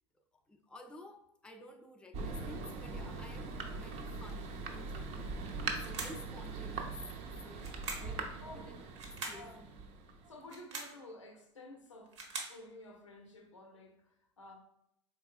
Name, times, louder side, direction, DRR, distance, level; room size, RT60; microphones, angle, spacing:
voice 1, 0.5-5.3 5.9-7.0 7.4-8.7 9.1-9.6, left 1 dB, 5° left, 0.4 m, -53 dB
Thunder, 2.1-10.5, right 4 dB, 45° right, 0.5 m, -41 dB
sound 1, 5.8-6.3 7.6-8.2 9.0-9.5 10.4-11.0 11.9-12.6, right 3 dB, 70° right, 0.8 m, -43 dB
voice 2, 7.8-8.8 9.3-9.6 10.3-14.5, left 1 dB, 85° left, 0.6 m, -53 dB
4.1 x 3.3 x 2.3 m
figure-of-eight pair, 80°, 15 cm